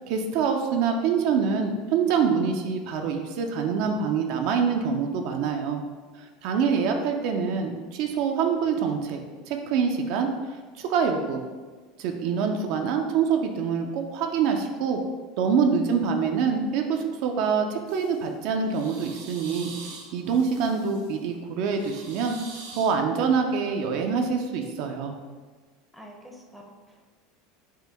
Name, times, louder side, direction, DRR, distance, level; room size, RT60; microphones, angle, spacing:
voice 1, 0.0-5.8 6.2-10.3 10.8-11.4 12.0-15.0 15.4-22.4 22.8-25.1, right 6 dB, 60° right, 4 dB, 0.4 m, -25 dB
sound 1, 17.9-18.2 18.6-21.2 21.6-22.9, right 4 dB, 90° right, 0.7 m, -44 dB
voice 2, 25.9-27.1, equal, ahead, 0 dB, 0.6 m, -47 dB
4.4 x 2.2 x 3.4 m, 1.4 s
supercardioid pair, 120°, 0 cm